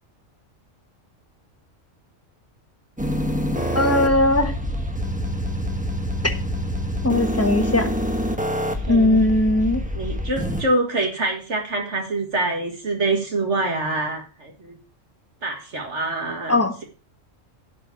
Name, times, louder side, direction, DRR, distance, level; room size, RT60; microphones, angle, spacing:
sound 1, 3.0-10.6, equal, 5° right, 1.2 m, -26 dB
voice 1, 3.7-4.5 7.0-7.9 8.9-9.8 16.5-16.7, left 2 dB, 10° left, 6 dB, 1.4 m, -19 dB
voice 2, 8.8-9.2 9.9-14.8 15.4-16.8, right 2 dB, 60° right, 2 dB, 2.1 m, -25 dB
11.0 x 4.8 x 8.3 m, 0.36 s
omnidirectional pair, 1.3 m